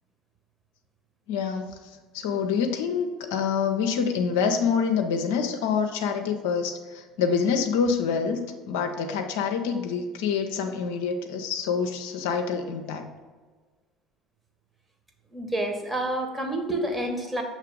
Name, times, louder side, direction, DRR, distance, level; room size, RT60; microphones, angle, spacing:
voice 1, 1.3-8.4 8.7-13.1, left 6 dB, 70° left, 5 dB, 0.5 m, -26 dB
voice 2, 15.3-17.4, right 1 dB, 15° right, 3 dB, 1.1 m, -28 dB
6.6 x 3.1 x 4.9 m, 1.4 s
figure-of-eight pair, 60°, 0 cm